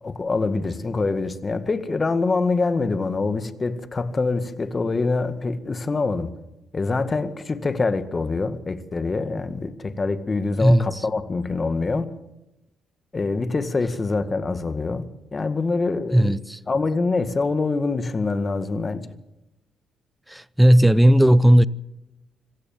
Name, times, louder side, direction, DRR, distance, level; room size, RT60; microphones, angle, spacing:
voice 1, 0.0-6.3 6.7-12.1 13.1-16.3 16.7-19.1, left 3 dB, 30° left, 2.0 m, -25 dB
voice 2, 10.6-11.0 16.1-16.6 20.3-21.7, equal, 5° right, 0.8 m, -16 dB
26.0 x 15.5 x 7.4 m
cardioid pair, 90°, 0 cm